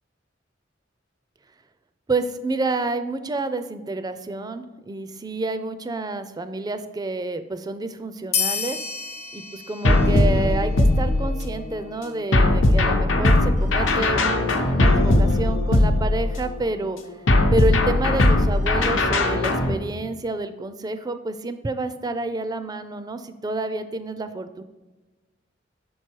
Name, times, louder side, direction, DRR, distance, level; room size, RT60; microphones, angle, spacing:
voice 1, 2.1-8.8 9.3-17.0 17.5-24.6, right 2 dB, 20° right, 10 dB, 0.4 m, -29 dB
sound 1, 8.3-11.4, left 6 dB, 35° left, 0.6 m, -30 dB
sound 2, 9.8-11.6 12.3-16.5 17.3-19.7, left 2 dB, 75° left, 0.8 m, -19 dB
6.4 x 4.7 x 4.5 m, 1.2 s
head